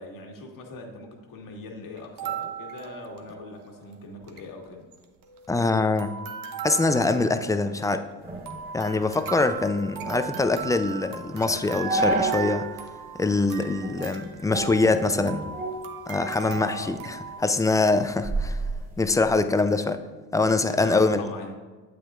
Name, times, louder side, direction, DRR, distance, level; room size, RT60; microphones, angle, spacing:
voice 1, 0.0-4.9 16.4-17.0 20.7-21.6, left 2 dB, 50° left, 2 dB, 1.6 m, -41 dB
sound 1, 2.0-3.7 3.9-4.0 4.2-4.5 4.9-5.7 6.0-17.4, right 9 dB, 55° right, 1.0 m, -38 dB
voice 2, 5.5-6.1 6.6-8.0 8.7-12.7 13.2-15.5 16.1-18.6 19.0-20.0 20.3-21.2, left 3 dB, 10° left, 10 dB, 0.3 m, -24 dB
sound 2, 8.2-12.7 13.1-13.2 13.8-14.2 14.5-16.6 17.0-19.4, right 2 dB, 20° right, 2.2 m, -32 dB
8.9 x 7.7 x 2.4 m, 1.3 s
supercardioid pair, 75°, 41 cm